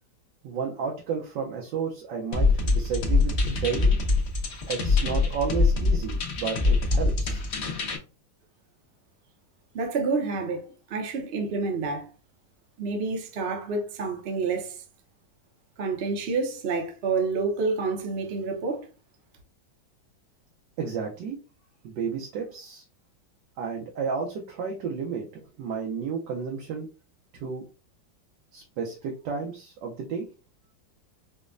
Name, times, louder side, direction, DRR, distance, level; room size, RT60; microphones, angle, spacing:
voice 1, 0.4-4.0 4.7-7.4 20.8-21.4 21.8-22.8 23.6-26.9 27.3-27.7 28.5-30.3, right 6 dB, 70° right, 1.3 m, -32 dB
sound 1, 2.3-8.0, left 3 dB, 85° left, 0.5 m, -24 dB
voice 2, 9.7-12.1 12.8-14.8 15.8-18.9, right 4 dB, 50° right, 0.7 m, -28 dB
5.1 x 2.1 x 2.5 m
omnidirectional pair, 2.1 m